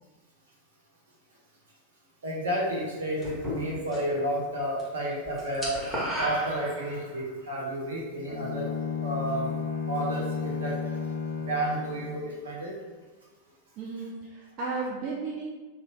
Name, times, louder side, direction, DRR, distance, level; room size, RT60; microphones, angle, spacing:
voice 1, 2.2-5.8 6.2-8.7 9.0-9.5 9.9-10.8 11.3-12.7, right 1 dB, 65° right, -4 dB, 0.9 m, -31 dB
sound 1, 3.2-4.2 4.5-4.9 5.1-7.2, equal, 5° left, 1.1 m, -33 dB
Bowed string instrument, 8.3-12.3, left 6 dB, 60° left, 0.4 m, -33 dB
voice 2, 13.8-15.5, right 3 dB, 40° right, -3 dB, 0.4 m, -34 dB
2.7 x 2.2 x 3.5 m, 1.3 s
figure-of-eight pair, 90°, 0 cm